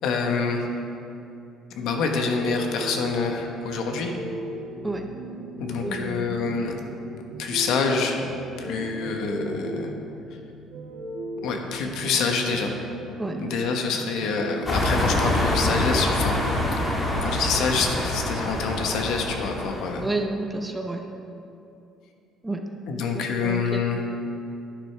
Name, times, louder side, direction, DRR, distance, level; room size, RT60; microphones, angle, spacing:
voice 1, 0.0-0.7 1.8-4.1 5.6-6.8 7.4-8.2 8.6-9.9 11.4-12.7 13.4-16.6 17.2-20.1 22.9-24.0, left 4 dB, 65° left, 3 dB, 1.1 m, -26 dB
sound 1, 2.1-15.9, right 1 dB, 60° right, 1.9 m, -38 dB
voice 2, 5.8-6.4 13.2-13.4 20.0-21.0 22.4-22.6 23.1-24.0, right 2 dB, 10° right, 4 dB, 0.6 m, -30 dB
sound 2, 14.7-20.0, left 1 dB, 15° left, 1.4 m, -25 dB
11.0 x 9.9 x 3.4 m, 2.8 s
cardioid pair, 165°, 0 cm